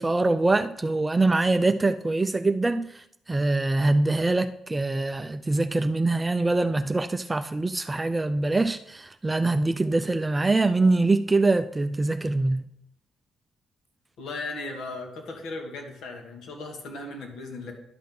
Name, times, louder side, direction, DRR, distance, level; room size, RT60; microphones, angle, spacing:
voice 1, 0.0-3.0 3.3-12.7, right 2 dB, 20° right, 0.4 m, -24 dB
voice 2, 14.2-17.7, left 2 dB, 75° left, 2.0 m, -37 dB
11.5 x 6.0 x 3.8 m
cardioid pair, 90°, 0 cm